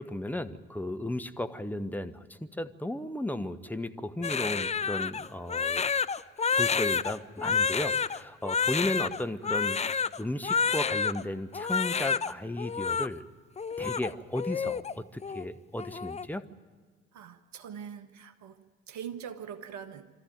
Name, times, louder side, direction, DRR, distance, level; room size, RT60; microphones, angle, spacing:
voice 1, 0.0-5.9 6.5-13.2 13.8-16.4, left 1 dB, 5° left, 9 dB, 1.2 m, -35 dB
Crying sobbing, 4.2-11.2 11.5-12.3 12.6-13.1 13.6-14.9 15.2-15.4 15.8-16.3, left 6 dB, 20° left, 0.6 m, -29 dB
voice 2, 17.1-18.6 18.9-20.1, right 8 dB, 60° right, 9 dB, 1.5 m, -42 dB
25.5 x 13.5 x 9.3 m, 1.5 s
figure-of-eight pair, 45°, 32 cm